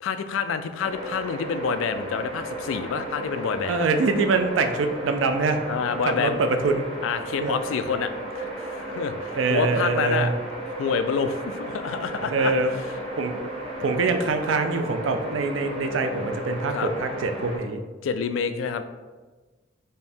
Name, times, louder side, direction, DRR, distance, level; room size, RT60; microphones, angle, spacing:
voice 1, 0.0-3.8 5.7-6.4 7.0-10.3 10.8-12.5 16.7-16.9 18.0-18.8, left 6 dB, 90° left, 10 dB, 0.3 m, -28 dB
sound 1, 0.8-17.6, right 1 dB, 30° right, 0.8 m, -34 dB
voice 2, 3.7-5.6 6.2-6.8 7.4-7.6 9.4-10.3 12.3-12.7 13.2-13.3 13.8-17.8, right 3 dB, 80° right, 7 dB, 0.4 m, -24 dB
4.3 x 2.7 x 3.4 m, 1.3 s
head